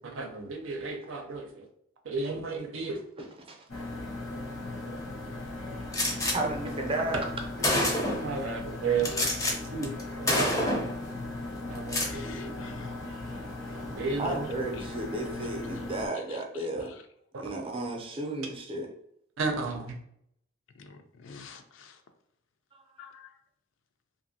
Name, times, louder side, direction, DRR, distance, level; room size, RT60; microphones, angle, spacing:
voice 1, 0.0-1.7 2.0-3.0 4.8-4.9 7.7-9.1 9.7-9.9 10.2-10.6 11.7-12.2 14.0-14.5 17.3-17.4 19.4-19.9, right 4 dB, 80° right, 0.6 m, -33 dB
sound 1, 3.7-16.1, left 2 dB, 90° left, 1.0 m, -38 dB
voice 2, 5.8-7.2 12.2-12.9 14.2-16.9 17.4-18.9 22.7-22.8, right 2 dB, 25° right, 0.5 m, -34 dB
Gunshot gunfire, 5.9-6.4 7.2-7.3 7.6-8.3 9.0-9.5 9.8-10.0 10.3-10.9 11.8-12.1, left 1 dB, 15° left, 0.5 m, -27 dB
voice 3, 9.0-9.3 12.0-13.0 14.2-14.3 14.8-14.9 16.1-17.0 20.8-22.0 23.0-23.4, left 5 dB, 70° left, 0.4 m, -47 dB
2.7 x 2.6 x 2.7 m
head